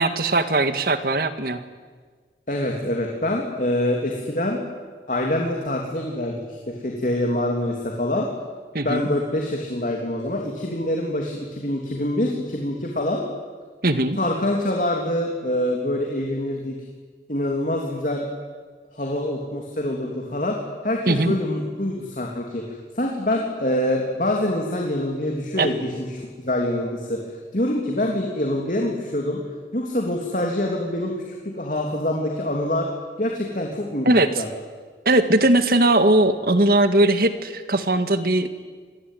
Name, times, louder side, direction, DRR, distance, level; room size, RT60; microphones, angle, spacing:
voice 1, 0.0-1.6 8.7-9.1 13.8-14.2 21.1-21.4 25.6-25.7 34.1-34.3 35.1-38.5, right 2 dB, 55° right, 9 dB, 1.8 m, -19 dB
voice 2, 2.5-4.6 5.1-8.3 8.8-13.2 14.2-16.8 17.3-18.2 18.9-20.6 20.8-27.2 27.5-29.4 29.7-31.1 31.4-32.9 33.2-34.5, left 1 dB, 45° left, 0 dB, 3.1 m, -25 dB
27.0 x 21.5 x 9.3 m, 1.6 s
head